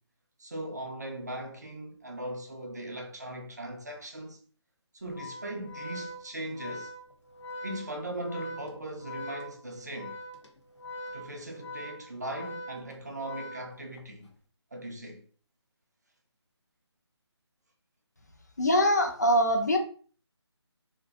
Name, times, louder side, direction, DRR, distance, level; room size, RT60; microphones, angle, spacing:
voice 1, 0.4-4.4 4.9-6.9 7.6-10.2 11.1-14.3 14.7-15.2, right 1 dB, 35° right, 0.4 m, -39 dB
Organ, 5.0-14.2, left 1 dB, 80° left, 0.6 m, -42 dB
voice 2, 18.6-19.8, equal, 40° left, 0.3 m, -23 dB
2.4 x 2.2 x 2.4 m
figure-of-eight pair, 175°, 15 cm